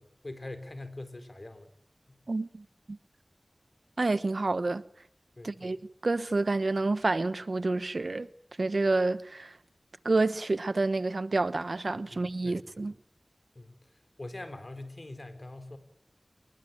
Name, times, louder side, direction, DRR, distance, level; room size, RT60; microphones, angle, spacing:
voice 1, 0.0-1.7 2.1-2.2 5.4-5.7 11.9-12.9 13.5-13.8 14.2-15.8, left 2 dB, 50° left, 4.1 m, -44 dB
voice 2, 2.3-3.0 4.0-4.8 5.4-5.8 6.0-8.3 8.6-9.6 10.0-12.9, right 3 dB, 80° right, 1.0 m, -28 dB
26.0 x 22.0 x 9.2 m
wide cardioid pair, 55°, 0 cm